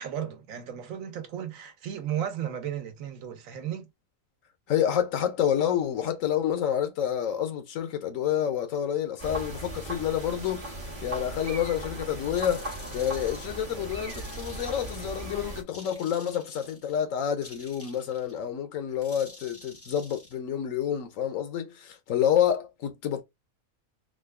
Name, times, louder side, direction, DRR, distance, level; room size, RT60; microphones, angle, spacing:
voice 1, 0.0-3.9, right 9 dB, 90° right, 1.2 m, -34 dB
voice 2, 4.7-12.7 12.9-23.2, left 9 dB, 85° left, 1.2 m, -28 dB
sound 1, 9.2-15.6, right 1 dB, 45° right, 1.1 m, -37 dB
sound 2, 12.3-13.6 14.1-15.3 15.7-17.0 17.4-18.4 19.0-20.3, left 1 dB, 15° left, 0.5 m, -49 dB
3.9 x 2.2 x 3.3 m
omnidirectional pair, 1.3 m